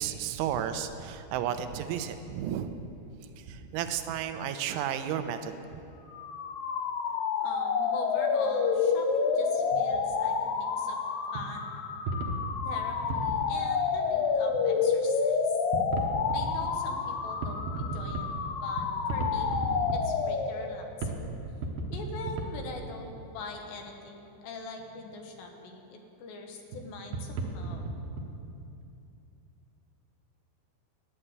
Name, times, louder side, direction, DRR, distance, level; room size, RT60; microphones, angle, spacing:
voice 1, 0.0-2.9 3.4-5.8, right 9 dB, 90° right, 9 dB, 3.1 m, -33 dB
sound 1, 6.1-20.8, left 5 dB, 90° left, 2.0 m, -29 dB
voice 2, 7.1-11.0 11.3-11.7 12.6-15.6 16.3-18.2 18.6-19.5 19.9-21.3 21.9-25.8 26.2-27.9, left 3 dB, 70° left, 3 dB, 3.3 m, -43 dB
sound 2, 9.6-10.1 10.6-10.7 11.3-11.5 12.1-13.4 14.5-14.6 15.1-15.2 15.7-16.5 17.3-18.3 18.8-20.0 20.6-20.7 21.0-21.2 21.5-22.5 22.9-23.0 24.8-25.0 26.7-26.8 27.1-28.3, right 2 dB, 70° right, 2.2 m, -34 dB
12.5 x 10.0 x 8.0 m, 2.7 s
omnidirectional pair, 5.5 m